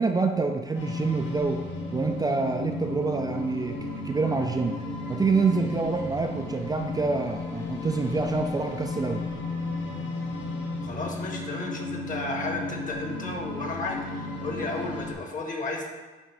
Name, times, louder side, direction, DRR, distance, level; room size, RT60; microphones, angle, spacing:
voice 1, 0.0-1.7 1.9-4.8 5.1-9.3, right 4 dB, 20° right, 4 dB, 0.3 m, -27 dB
sound 1, 0.7-15.1, left 2 dB, 70° left, 1.4 m, -34 dB
voice 2, 10.8-15.9, left 2 dB, 40° left, 1 dB, 1.4 m, -33 dB
9.3 x 3.6 x 3.4 m, 1.2 s
cardioid pair, 90°, 20 cm